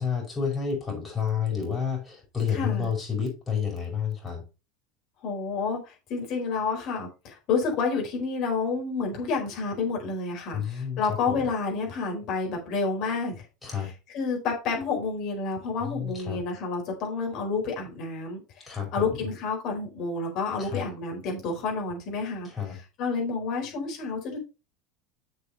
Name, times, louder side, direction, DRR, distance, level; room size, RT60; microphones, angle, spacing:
voice 1, 0.0-4.4 10.5-11.0 11.3-11.4 13.6-13.9 15.8-16.4 18.6-19.1 20.6-20.8 22.4-22.8, left 7 dB, 15° left, 5.1 m, -30 dB
voice 2, 2.5-2.9 5.2-24.4, left 4 dB, 45° left, 4.4 m, -30 dB
7.3 x 6.9 x 4.1 m
figure-of-eight pair, 75°, 0 cm